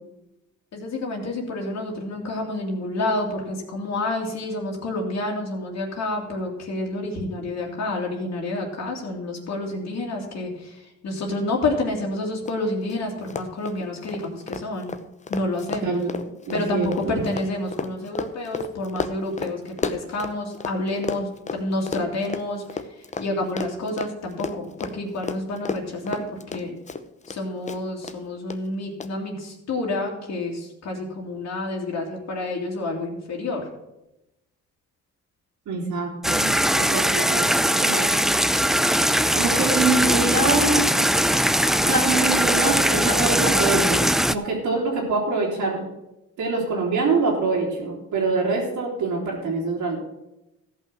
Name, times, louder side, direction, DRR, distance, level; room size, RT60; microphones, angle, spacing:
voice 1, 0.7-14.9 15.3-16.0 16.5-22.8 23.2-26.8 27.3-33.7, left 2 dB, 60° left, -1 dB, 2.5 m, -29 dB
Run, 12.5-12.6 12.8-13.0 13.2-20.8 21.0-27.4 27.7-28.2 28.5-28.6 29.0-29.1, left 4 dB, 25° left, 0.8 m, -32 dB
voice 2, 15.8-16.2 16.5-17.2 35.7-38.1 39.3-40.8 41.8-45.8 46.4-50.0, right 3 dB, 80° right, -5 dB, 3.1 m, -25 dB
sound 1, 36.2-44.3, equal, ahead, 0.4 m, -20 dB
14.5 x 5.6 x 6.1 m, 0.91 s
cardioid pair, 90°, 30 cm